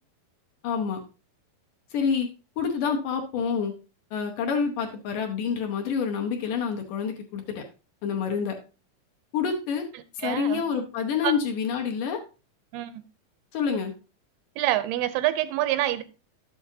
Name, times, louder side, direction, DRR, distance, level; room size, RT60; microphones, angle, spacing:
voice 1, 0.6-1.0 1.9-2.3 2.6-3.7 4.1-7.6 8.0-8.6 9.3-9.9 10.1-12.2 13.5-13.9, left 6 dB, 70° left, 2.2 m, -27 dB
voice 2, 10.2-10.6 11.2-11.3 12.7-13.0 14.6-16.0, right 13 dB, 85° right, 2.6 m, -26 dB
11.5 x 8.1 x 2.7 m
omnidirectional pair, 4.4 m